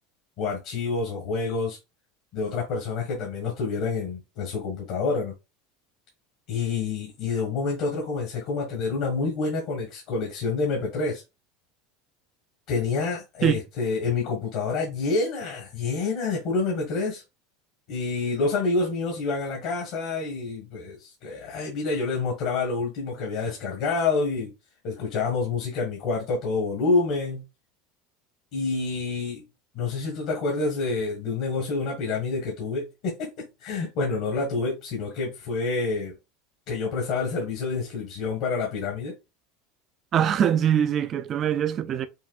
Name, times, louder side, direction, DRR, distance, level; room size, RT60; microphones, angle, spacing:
voice 1, 0.4-1.8 2.3-5.3 6.5-11.2 12.7-17.2 17.9-24.5 24.8-27.4 28.5-29.4 29.7-36.1 36.7-39.1, left 4 dB, 55° left, 1.5 m, -28 dB
voice 2, 40.1-42.1, right 9 dB, 30° right, 0.4 m, -23 dB
5.5 x 2.6 x 2.4 m
supercardioid pair, 155°, 0 cm